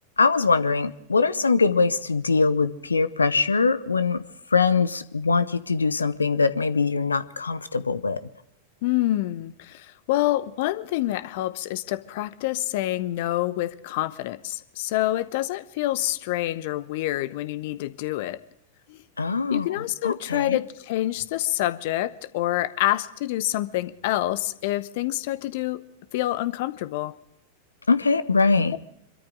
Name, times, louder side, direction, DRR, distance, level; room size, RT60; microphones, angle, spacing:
voice 1, 0.2-4.2 4.5-8.2 19.2-20.6 27.9-28.7, left 4 dB, 75° left, 0.8 m, -22 dB
voice 2, 8.8-18.4 18.9-19.0 19.5-25.8 26.1-27.1, left 15 dB, 50° left, 0.9 m, -27 dB
26.0 x 13.5 x 3.6 m
figure-of-eight pair, 90°, 0 cm